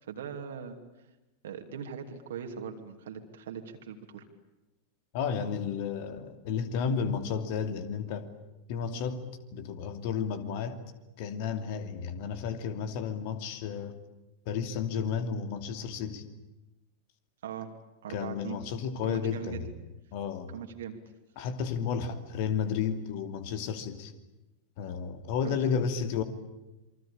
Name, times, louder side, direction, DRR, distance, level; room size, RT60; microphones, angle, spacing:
voice 1, 0.1-0.8 1.4-4.2 17.4-17.7 18.0-18.6 19.1-19.6 20.5-21.0 25.4-25.6, right 7 dB, 60° right, 2.8 m, -40 dB
voice 2, 5.1-8.3 8.7-10.8 11.2-14.0 14.5-16.2 18.1-19.7 20.1-20.5 21.4-24.1 24.8-26.2, left 6 dB, 45° left, 2.7 m, -32 dB
27.5 x 24.5 x 8.7 m
figure-of-eight pair, 90°, 0 cm